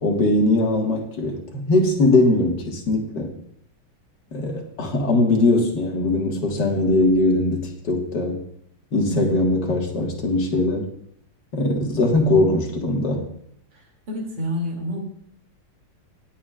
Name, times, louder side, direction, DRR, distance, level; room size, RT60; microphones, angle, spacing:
voice 1, 0.0-3.3 4.3-8.4 8.9-10.9 11.5-13.2, left 2 dB, 50° left, 0 dB, 2.4 m, -20 dB
voice 2, 14.1-15.0, equal, 55° right, -1 dB, 3.5 m, -28 dB
19.0 x 8.5 x 2.5 m, 0.68 s
omnidirectional pair, 2.4 m